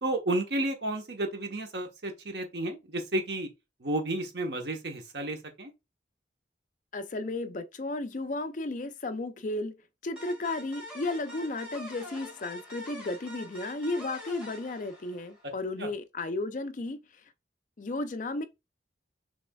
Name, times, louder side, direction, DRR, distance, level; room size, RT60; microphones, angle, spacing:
voice 1, 0.0-3.5 3.8-5.7 15.8-15.9, right 1 dB, 65° right, 1.0 m, -32 dB
voice 2, 6.9-9.8 10.0-17.0 17.8-18.4, left 2 dB, 45° left, 0.5 m, -34 dB
sound 1, 10.2-15.6, left 1 dB, 5° right, 1.9 m, -45 dB
6.3 x 3.4 x 2.3 m
head